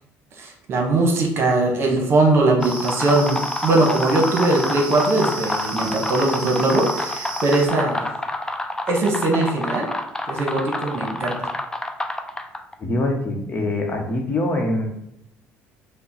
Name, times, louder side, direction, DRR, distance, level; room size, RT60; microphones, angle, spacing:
voice 1, 0.4-8.1 8.9-9.9 10.3-11.5, right 2 dB, 50° right, 2 dB, 1.1 m, -20 dB
sound 1, 2.4-12.7, left 1 dB, 10° left, 0.5 m, -28 dB
sound 2, 2.6-7.7, right 2 dB, 20° right, 1.4 m, -34 dB
voice 2, 12.8-14.9, left 1 dB, 35° left, 2 dB, 1.0 m, -24 dB
5.4 x 2.2 x 4.1 m, 0.80 s
supercardioid pair, 90°, 5 cm